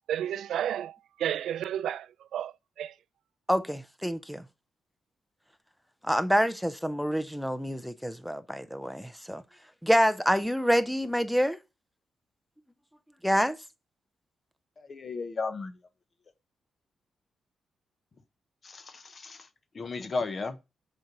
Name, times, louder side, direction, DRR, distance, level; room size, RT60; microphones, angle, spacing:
voice 1, 0.1-3.0, right 10 dB, 85° right, 0.3 m, -32 dB
voice 2, 3.5-4.4 6.0-9.4 9.8-11.6 13.2-13.6, equal, ahead, 0.5 m, -27 dB
voice 3, 14.8-15.8 18.6-19.5 19.7-20.6, left 4 dB, 30° left, 0.8 m, -34 dB
6.6 x 4.4 x 4.6 m
wide cardioid pair, 175°, 0 cm